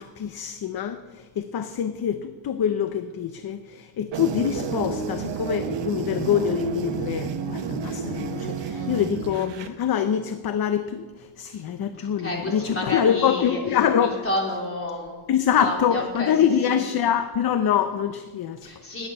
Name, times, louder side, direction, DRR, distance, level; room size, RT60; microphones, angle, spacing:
voice 1, 0.0-14.2 15.3-18.7, left 8 dB, 50° left, 9 dB, 0.7 m, -25 dB
sound 1, 4.1-9.7, right 5 dB, 60° right, 1.1 m, -30 dB
voice 2, 8.7-9.1 11.9-13.6 14.0-15.2 15.6-16.3 16.7-16.8 18.6-19.1, left 1 dB, 25° left, -2 dB, 3.5 m, -30 dB
19.5 x 9.0 x 5.5 m, 1.4 s
wide cardioid pair, 165°, 48 cm